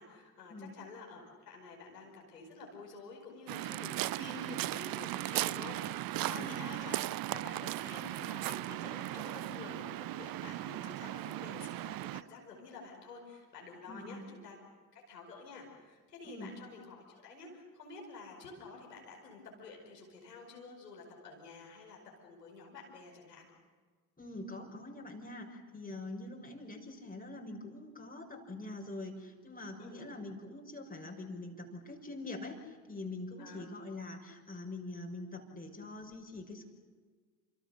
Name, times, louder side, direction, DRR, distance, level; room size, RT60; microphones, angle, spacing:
voice 1, 0.0-14.6 14.9-23.5 29.8-30.1 33.4-33.6, left 4 dB, 85° left, -1 dB, 5.2 m, -50 dB
Waves surf, 3.5-12.2, right 16 dB, 50° right, 0.7 m, -37 dB
voice 2, 13.9-14.2 16.2-16.5 24.2-36.6, left 2 dB, 20° left, 2 dB, 6.2 m, -44 dB
29.5 x 26.0 x 6.7 m, 1.5 s
figure-of-eight pair, 50°, 47 cm